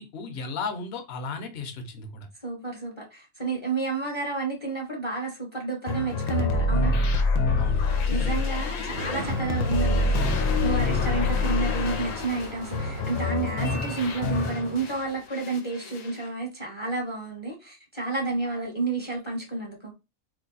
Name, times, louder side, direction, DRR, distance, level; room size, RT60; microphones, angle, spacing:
voice 1, 0.0-2.3 7.6-8.4, left 3 dB, 60° left, 0.9 m, -35 dB
voice 2, 2.4-7.0 8.1-19.9, right 3 dB, 30° left, 0.7 m, -31 dB
sound 1, 5.9-15.0 15.3-16.2, left 3 dB, 90° left, 1.0 m, -26 dB
Sliding door, 7.9-15.3, right 3 dB, 65° right, 0.7 m, -40 dB
2.7 x 2.2 x 3.8 m
omnidirectional pair, 1.3 m